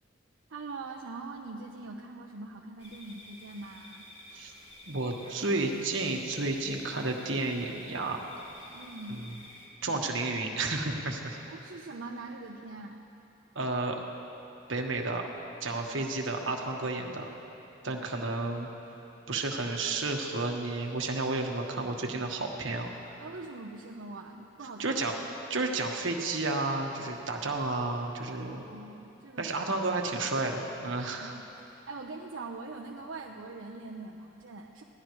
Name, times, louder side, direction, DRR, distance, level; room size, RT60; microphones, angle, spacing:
voice 1, 0.5-4.1 8.7-9.3 11.5-13.0 23.2-25.0 28.5-29.5 31.2-34.8, right 3 dB, 90° right, -2 dB, 0.9 m, -43 dB
sound 1, 2.8-9.7, left 1 dB, 30° left, 3.3 m, -51 dB
voice 2, 4.9-8.2 9.1-9.4 9.8-11.4 13.5-14.0 14.7-15.3 15.6-17.3 17.8-18.7 19.3-23.1 24.8-25.2 25.5-28.6 29.4-31.3, right 2 dB, 70° right, 2 dB, 1.5 m, -31 dB
22.5 x 16.5 x 3.2 m, 3.0 s
head